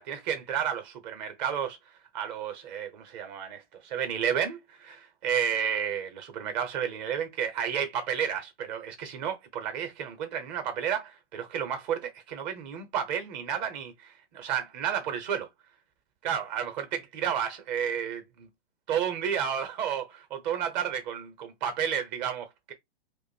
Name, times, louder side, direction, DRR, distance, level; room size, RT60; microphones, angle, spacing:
voice 1, 0.0-1.8 2.1-15.5 16.2-18.5 18.9-22.7, right 8 dB, 40° right, 1.1 m, -31 dB
2.7 x 2.5 x 4.2 m
figure-of-eight pair, 110°, 33 cm